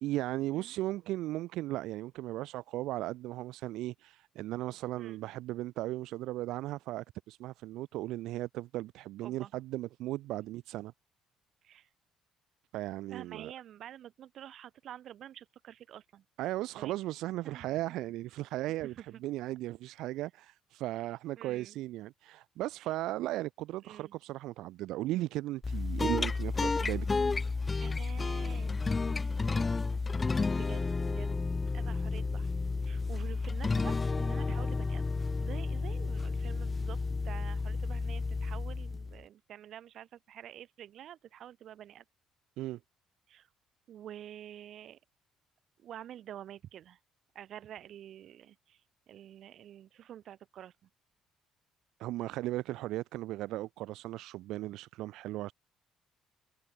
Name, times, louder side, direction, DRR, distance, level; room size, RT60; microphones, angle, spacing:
voice 1, 0.0-10.9 12.7-13.5 16.4-27.1 42.6-42.8 52.0-55.5, right 16 dB, 80° right, 1.5 m, -36 dB
voice 2, 9.2-9.5 11.6-11.9 13.1-16.2 16.8-17.0 17.4-17.7 18.8-19.2 21.4-21.8 22.8-22.9 23.8-24.1 27.8-29.7 30.5-31.5 31.7-32.5 32.8-35.1 35.4-37.0 37.2-42.0 43.3-43.5 43.9-45.0 45.8-47.0 47.3-48.8 49.1-50.9, right 11 dB, 65° right, 3.0 m, -48 dB
sound 1, 25.6-39.2, left 4 dB, 25° left, 1.5 m, -32 dB
cardioid pair, 95°, 0 cm